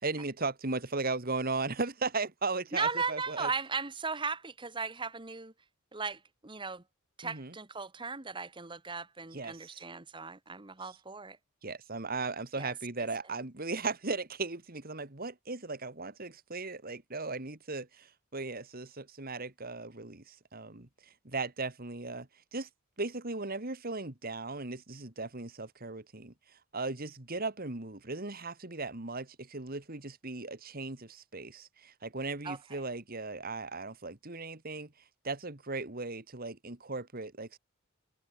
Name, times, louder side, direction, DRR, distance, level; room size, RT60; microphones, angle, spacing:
voice 1, 0.0-3.5 7.2-7.5 9.3-9.8 10.8-11.0 11.6-18.1 18.3-20.9 21.2-22.7 23.0-26.3 26.7-34.9 35.2-37.6, right 3 dB, 45° right, 2.1 m, -37 dB
voice 2, 2.7-5.5 5.9-6.8 7.2-11.4 12.6-12.7 32.4-32.6, right 4 dB, 25° right, 1.4 m, -37 dB
head